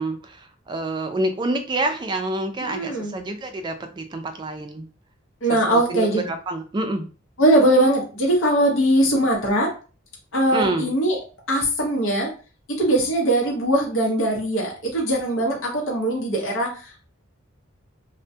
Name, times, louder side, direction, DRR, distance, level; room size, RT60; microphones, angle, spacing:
voice 1, 0.0-4.9 5.5-7.1 10.5-10.9, right 2 dB, 25° right, 6 dB, 0.3 m, -27 dB
voice 2, 2.6-3.1 5.4-6.3 7.4-9.7 10.3-11.2 11.5-12.3 12.7-17.0, right 1 dB, 75° left, -1 dB, 0.8 m, -21 dB
2.2 x 2.1 x 2.6 m, 0.35 s
head